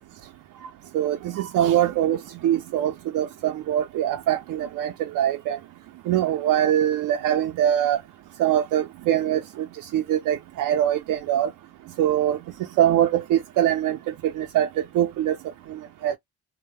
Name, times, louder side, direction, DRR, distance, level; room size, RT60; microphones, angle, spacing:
voice 1, 0.9-5.6 6.1-8.0 8.4-11.5 12.0-12.4 12.8-15.4 15.7-16.2, right 11 dB, 75° right, 0.5 m, -23 dB
2.1 x 2.1 x 3.1 m
supercardioid pair, 55°, 31 cm